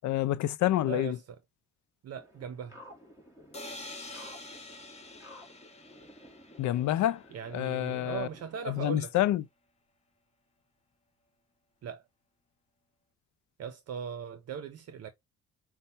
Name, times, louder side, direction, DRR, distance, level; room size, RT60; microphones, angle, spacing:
voice 1, 0.0-1.1 6.6-7.2 7.5-8.3 8.8-9.4, left 13 dB, 70° left, 0.5 m, -27 dB
voice 2, 0.8-1.4 2.0-2.8 7.3-9.2 11.8-12.1 13.6-15.1, right 7 dB, 55° right, 0.7 m, -39 dB
sound 1, 2.1-8.8, equal, 10° right, 2.3 m, -54 dB
sound 2, 3.5-7.3, left 2 dB, 20° left, 1.2 m, -46 dB
5.5 x 2.2 x 4.0 m
cardioid pair, 90°, 30 cm